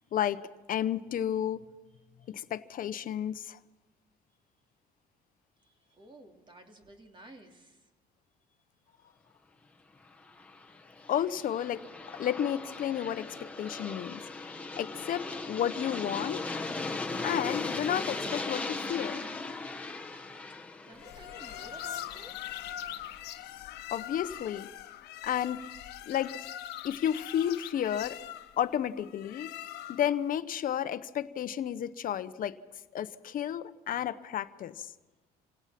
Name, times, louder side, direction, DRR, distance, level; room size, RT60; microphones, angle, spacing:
voice 1, 0.1-1.7 2.3-3.6 11.1-11.9 12.2-16.5 17.2-19.3 23.9-24.7 25.2-25.6 26.1-26.5 26.8-28.2 28.6-29.5 29.9-32.6 32.9-34.9, left 10 dB, 55° left, 12 dB, 1.0 m, -32 dB
voice 2, 1.9-2.4 5.6-7.9 8.5-8.6 10.6-11.0 20.8-22.6, right 1 dB, 30° right, 3 dB, 3.3 m, -54 dB
Aircraft, 10.2-23.0, left 3 dB, 10° left, 1.6 m, -38 dB
sound 1, 21.0-30.2, left 12 dB, 85° left, 1.2 m, -42 dB
26.0 x 17.5 x 6.0 m, 1.1 s
cardioid pair, 110°, 17 cm